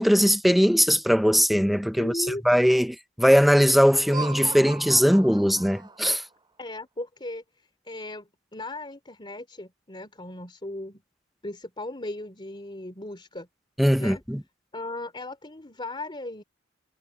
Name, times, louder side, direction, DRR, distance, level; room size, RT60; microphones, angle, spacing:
voice 1, 0.0-6.2 13.8-14.4, equal, ahead, 0.8 m, -20 dB
voice 2, 2.0-2.4 6.6-11.0 11.4-13.5 14.0-14.2 14.7-16.4, left 2 dB, 25° left, 3.3 m, -37 dB
Laughter, 3.9-6.3, right 4 dB, 25° right, 2.4 m, -37 dB
head